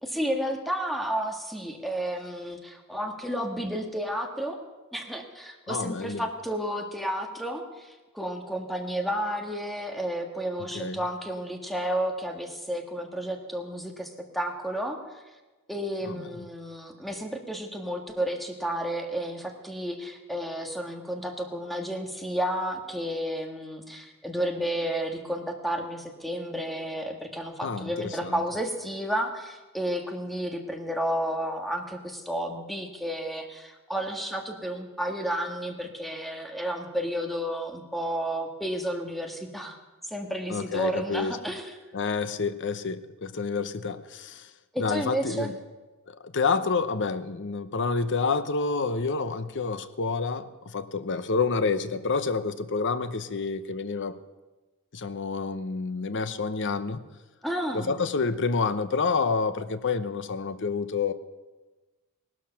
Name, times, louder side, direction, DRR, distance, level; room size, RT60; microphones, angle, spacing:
voice 1, 0.0-4.6 4.9-15.0 15.7-39.8 40.0-41.8 44.7-45.5 57.4-57.9, equal, ahead, 3 dB, 1.6 m, -32 dB
voice 2, 5.7-6.2 10.7-11.0 16.1-16.3 27.6-28.4 40.5-41.4 41.9-44.5 44.8-45.5 46.1-54.2 54.9-57.0 57.7-61.1, left 4 dB, 55° left, 12 dB, 0.8 m, -28 dB
18.5 x 12.5 x 5.8 m, 1.2 s
head